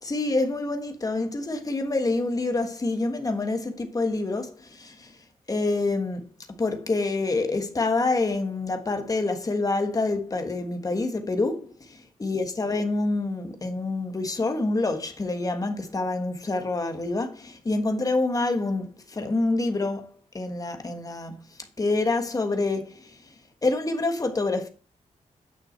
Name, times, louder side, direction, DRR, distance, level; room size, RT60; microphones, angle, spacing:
voice 1, 0.0-5.1 5.5-6.3 6.6-11.7 12.2-21.4 21.8-23.2 23.6-24.7, left 2 dB, 25° left, 1.4 m, -27 dB
9.3 x 6.0 x 4.4 m
wide cardioid pair, 145°, 14 cm